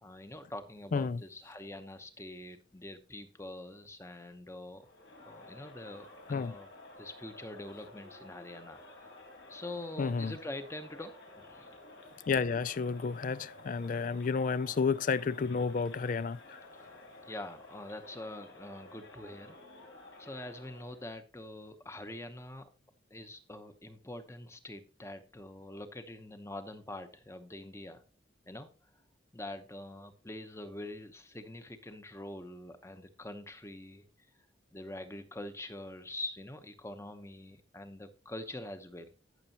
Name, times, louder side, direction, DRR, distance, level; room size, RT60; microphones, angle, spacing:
voice 1, 0.0-4.9 5.3-6.7 7.0-9.1 9.5-11.8 16.7-19.6 19.8-19.9 20.2-22.7 23.1-28.0 28.5-28.7 29.3-34.0 34.7-39.1, left 1 dB, 15° left, 0.9 m, -45 dB
voice 2, 0.9-1.2 6.3-6.6 10.0-10.3 12.3-16.6, left 5 dB, 45° left, 0.3 m, -31 dB
Crowd, 4.8-21.1, left 2 dB, 75° left, 3.8 m, -53 dB
14.5 x 6.8 x 2.9 m
head